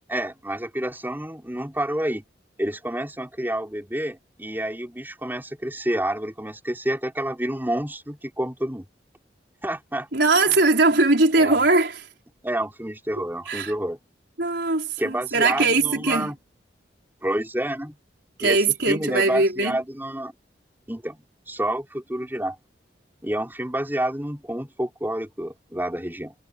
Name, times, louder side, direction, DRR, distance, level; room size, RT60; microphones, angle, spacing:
voice 1, 0.0-2.2 2.6-8.9 9.6-10.1 10.5-10.6 11.4-11.6 12.4-14.0 15.0-16.4 17.2-18.0 18.4-20.3 20.9-22.6 23.2-26.3, right 1 dB, 10° right, 5.7 m, -29 dB
voice 2, 10.1-12.0 13.5-13.7 14.4-16.3 18.4-19.8, right 3 dB, 70° right, 4.8 m, -20 dB
head